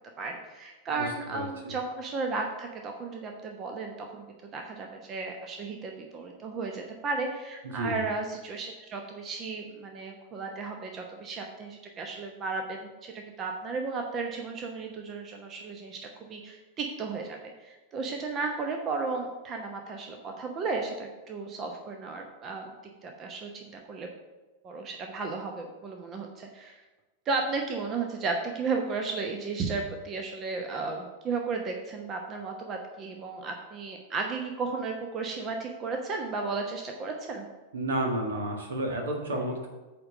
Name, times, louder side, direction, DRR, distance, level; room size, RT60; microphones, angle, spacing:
voice 1, 0.2-4.3 4.5-13.1 13.4-16.0 16.3-22.7 23.0-24.1 24.6-26.8 27.3-37.5, right 4 dB, 30° right, 3 dB, 0.9 m, -34 dB
voice 2, 1.0-1.7 7.6-8.0 37.7-39.7, right 1 dB, 65° right, 2 dB, 1.6 m, -31 dB
9.0 x 3.8 x 6.5 m, 1.2 s
figure-of-eight pair, 90°, 0 cm